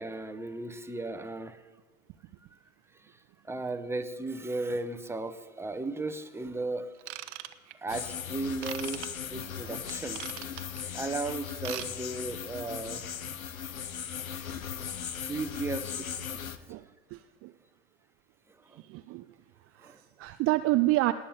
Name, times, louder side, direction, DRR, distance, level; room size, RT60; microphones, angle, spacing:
voice 1, 0.0-1.6 2.9-3.2 3.4-6.9 7.7-9.0 9.3-13.1 14.6-14.7 14.9-16.7 18.7-18.8 19.8-20.0, right 2 dB, 5° right, 9 dB, 1.1 m, -36 dB
Ratchet pawl / Tools, 7.0-7.9 8.6-9.1 9.9-10.8 11.5-11.9 12.1-12.3 12.8-12.9, right 15 dB, 60° right, 1.1 m, -40 dB
sound 1, 7.9-16.6, left 8 dB, 80° left, 1.0 m, -38 dB
voice 2, 17.1-17.5 18.9-19.2 19.8-21.1, right 18 dB, 35° right, 10 dB, 0.6 m, -28 dB
19.0 x 8.5 x 8.7 m, 1.4 s
figure-of-eight pair, 90°, 41 cm